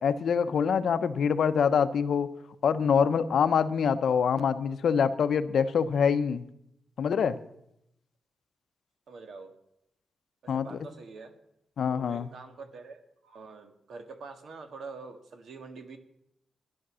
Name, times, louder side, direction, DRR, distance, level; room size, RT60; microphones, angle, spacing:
voice 1, 0.0-2.3 2.6-6.4 7.0-7.4 10.5-10.8 11.8-12.3, left 7 dB, 65° left, 11 dB, 0.8 m, -25 dB
voice 2, 9.1-9.5 10.4-11.3 11.9-16.0, right 4 dB, 65° right, 7 dB, 1.7 m, -45 dB
14.0 x 10.5 x 6.3 m, 0.80 s
wide cardioid pair, 155°, 0 cm